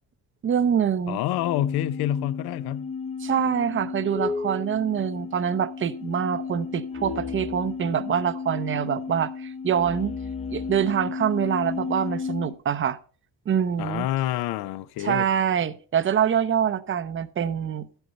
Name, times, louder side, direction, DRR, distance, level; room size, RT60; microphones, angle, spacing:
voice 1, 0.4-1.2 3.2-10.2 10.5-13.0 13.5-14.1 15.0-17.9, right 8 dB, 35° right, 0.5 m, -25 dB
voice 2, 1.1-2.9 13.8-15.3, left 13 dB, 80° left, 0.5 m, -27 dB
sound 1, 1.3-12.5, left 5 dB, 20° left, 0.5 m, -33 dB
11.0 x 8.0 x 4.0 m
cardioid pair, 115°, 37 cm